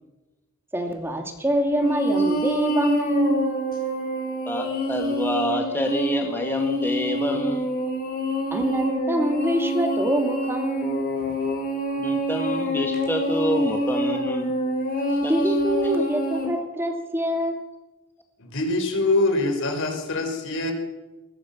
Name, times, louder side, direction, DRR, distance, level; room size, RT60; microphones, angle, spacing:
voice 1, 0.7-3.4 8.5-11.0 15.3-17.7, equal, 10° right, 4 dB, 2.5 m, -24 dB
sound 1, 1.7-16.5, right 1 dB, 45° left, 6.8 m, -26 dB
voice 2, 4.5-7.7 12.0-14.5 15.2-15.5, left 1 dB, 10° left, 3 dB, 1.9 m, -27 dB
voice 3, 18.4-20.7, left 2 dB, 65° left, 5 dB, 5.2 m, -24 dB
21.5 x 17.0 x 7.3 m, 1.1 s
head